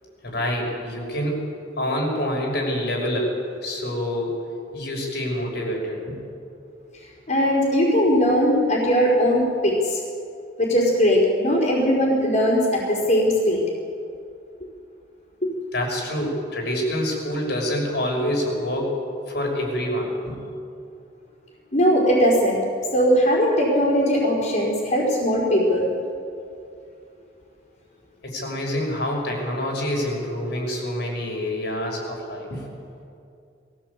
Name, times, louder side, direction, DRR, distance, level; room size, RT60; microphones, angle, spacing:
voice 1, 0.2-1.5 1.8-3.4 3.6-4.4 4.7-6.2 15.7-19.0 19.3-20.4 28.2-32.6, equal, 65° left, 0 dB, 5.9 m, -26 dB
voice 2, 7.3-10.0 10.6-13.6 15.4-15.5 21.7-22.6 22.9-25.9, equal, 45° left, -6 dB, 4.8 m, -19 dB
22.0 x 16.5 x 8.4 m, 2.5 s
head